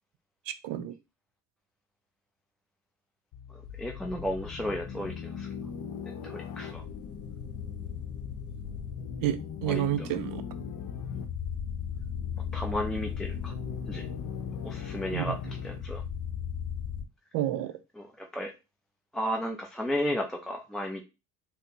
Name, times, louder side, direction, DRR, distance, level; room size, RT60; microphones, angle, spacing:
voice 1, 0.5-1.0 9.2-10.4 15.1-15.4 17.3-17.8, right 12 dB, 60° right, 0.5 m, -30 dB
sound 1, 3.3-17.0, left 7 dB, 60° left, 0.7 m, -37 dB
voice 2, 3.8-5.5 6.2-6.8 9.7-9.8 12.5-13.5 13.9-14.0 14.6-15.3 15.6-16.0 18.0-18.5 19.1-21.0, equal, ahead, 0.4 m, -33 dB
4.1 x 2.0 x 2.8 m
cardioid pair, 95°, 38 cm